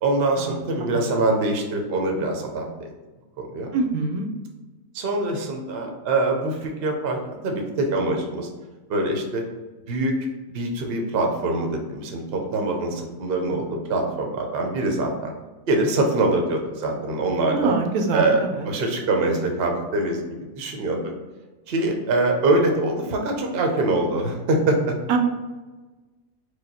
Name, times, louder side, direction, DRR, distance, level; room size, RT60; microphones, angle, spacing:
voice 1, 0.0-2.9 3.5-3.8 4.9-8.5 8.9-9.4 9.9-10.1 10.5-13.6 13.9-15.3 15.7-17.7 18.1-21.1 21.7-25.0, right 2 dB, 50° right, 2 dB, 0.8 m, -24 dB
voice 2, 3.7-4.3 17.5-18.7 25.1-25.2, right 3 dB, 85° right, 4 dB, 1.1 m, -24 dB
4.8 x 2.3 x 4.2 m, 1.2 s
omnidirectional pair, 1.5 m